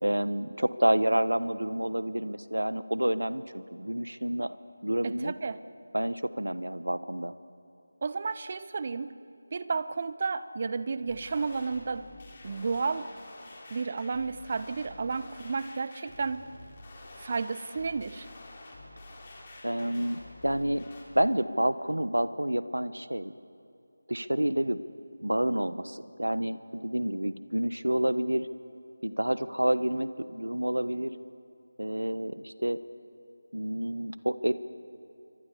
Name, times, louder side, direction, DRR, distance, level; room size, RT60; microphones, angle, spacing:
voice 1, 0.0-4.6 4.8-5.3 5.9-7.3 19.6-20.8 21.1-23.3 24.1-24.8 25.2-28.5 29.0-31.1 31.8-32.8 33.5-34.5, right 1 dB, 80° right, 14 dB, 1.1 m, -29 dB
voice 2, 5.0-5.6 8.0-9.1 9.5-12.1 12.4-13.1 13.7-16.5 17.2-18.3, right 4 dB, 30° right, 15 dB, 0.7 m, -32 dB
sound 1, 11.1-21.0, left 2 dB, 25° left, 3.7 m, -49 dB
28.0 x 24.5 x 7.0 m, 2.6 s
figure-of-eight pair, 165°, 0 cm